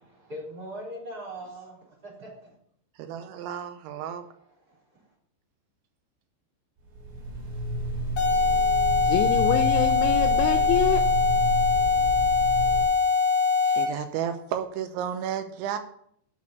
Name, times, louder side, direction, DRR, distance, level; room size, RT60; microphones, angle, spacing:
voice 1, 0.1-2.5 4.7-4.8, equal, 20° right, -5 dB, 4.0 m, -40 dB
voice 2, 3.0-4.3 13.6-15.8, right 9 dB, 80° right, 8 dB, 3.0 m, -32 dB
sound 1, 6.8-12.8, right 3 dB, 65° right, 5.1 m, -30 dB
sound 2, 8.2-14.1, left 5 dB, 40° left, 1.8 m, -22 dB
voice 3, 9.0-11.0, left 10 dB, 80° left, 6 dB, 2.6 m, -26 dB
8.5 x 6.4 x 8.3 m, 0.67 s
omnidirectional pair, 5.5 m